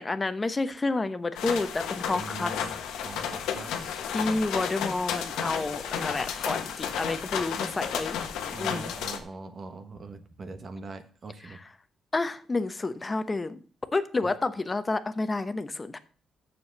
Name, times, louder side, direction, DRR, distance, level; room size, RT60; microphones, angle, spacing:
voice 1, 0.0-2.6 4.1-8.2 8.6-8.9 11.4-11.7 12.1-13.6 13.9-16.0, left 3 dB, 25° left, 11 dB, 0.9 m, -30 dB
sound 1, 1.3-9.2, left 8 dB, 90° left, 1.2 m, -32 dB
voice 2, 2.1-4.0 8.5-11.6 14.2-14.3, right 3 dB, 40° right, 8 dB, 1.2 m, -42 dB
7.0 x 7.0 x 6.6 m, 0.42 s
cardioid pair, 90°, 0 cm